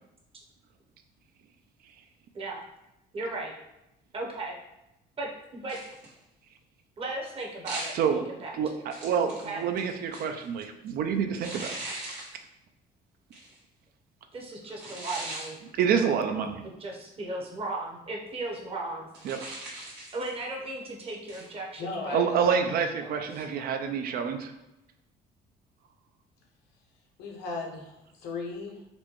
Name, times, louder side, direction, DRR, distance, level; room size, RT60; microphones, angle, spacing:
voice 1, 3.1-3.5 4.1-4.6 5.2-5.8 7.0-8.8 9.4-9.6 14.3-15.6 16.0-16.5 16.8-19.1 20.1-22.2 23.3-23.4, right 2 dB, 35° right, -1 dB, 0.9 m, -36 dB
sound 1, 5.7-6.2 7.6-8.1 8.9-10.4 11.4-12.4 13.3-13.6 14.8-15.5 19.1-20.4 21.3-21.5, right 2 dB, 80° right, 1.3 m, -39 dB
voice 2, 7.9-8.2 8.5-11.7 15.7-16.6 19.2-19.4 22.1-24.5, right 7 dB, 65° right, 6 dB, 0.4 m, -27 dB
voice 3, 21.8-23.4 27.2-28.9, left 3 dB, 80° left, 0 dB, 0.8 m, -37 dB
4.2 x 2.2 x 3.0 m, 0.92 s
cardioid pair, 110°, 17 cm